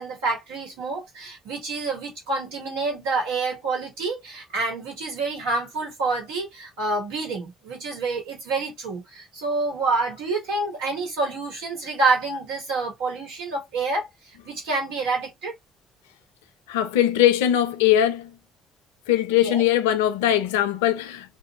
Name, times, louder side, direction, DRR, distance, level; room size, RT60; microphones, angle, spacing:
voice 1, 0.0-14.1 14.4-15.5 19.3-19.6, right 3 dB, 75° right, 1.2 m, -27 dB
voice 2, 16.7-18.3 19.1-21.4, left 11 dB, 80° left, 0.4 m, -21 dB
2.5 x 2.1 x 2.8 m
hypercardioid pair, 50°, 0 cm